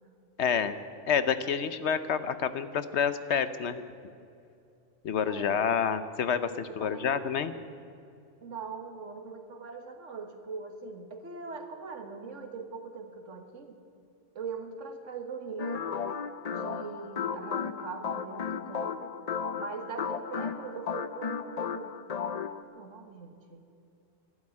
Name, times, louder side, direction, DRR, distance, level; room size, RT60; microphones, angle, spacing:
voice 1, 0.4-0.8 1.1-3.8 5.0-7.5, left 7 dB, 65° left, 12 dB, 1.0 m, -28 dB
voice 2, 5.3-5.6 6.7-7.1 8.4-13.8 14.4-15.9 16.5-19.1 19.5-21.9 22.6-23.7, right 4 dB, 80° right, 6 dB, 1.7 m, -41 dB
sound 1, 15.6-22.6, left 7 dB, 45° left, 0.5 m, -34 dB
12.0 x 12.0 x 9.7 m, 2.5 s
omnidirectional pair, 1.3 m